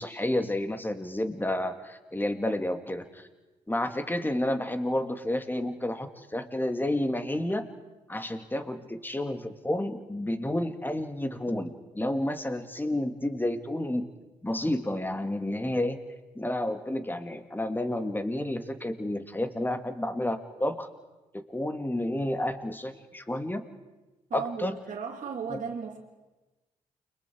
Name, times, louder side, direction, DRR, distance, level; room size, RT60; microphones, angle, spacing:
voice 1, 0.0-3.3 3.7-7.7 8.1-14.0 14.4-16.0 16.4-20.9 21.3-23.6 24.3-24.8 25.5-25.6, left 1 dB, 15° left, 8 dB, 2.4 m, -30 dB
voice 2, 24.3-26.0, right 6 dB, 60° right, -1 dB, 2.5 m, -35 dB
29.5 x 23.5 x 4.7 m, 1.1 s
hypercardioid pair, 45°, 15 cm